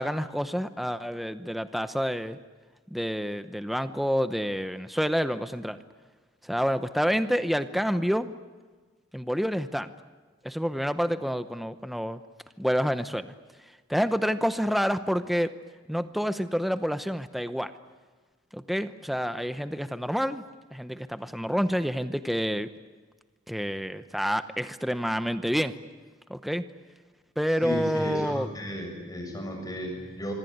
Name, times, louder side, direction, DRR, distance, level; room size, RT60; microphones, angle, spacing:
voice 1, 0.0-2.4 2.9-5.8 6.4-8.3 9.1-9.9 10.4-12.2 12.6-13.3 13.9-15.5 15.9-17.7 18.5-20.4 20.7-22.7 23.5-25.7 26.3-26.6 27.4-28.5, equal, ahead, 10 dB, 0.8 m, -28 dB
voice 2, 27.6-30.3, equal, 20° left, 3 dB, 7.1 m, -34 dB
26.0 x 24.5 x 9.4 m, 1.4 s
head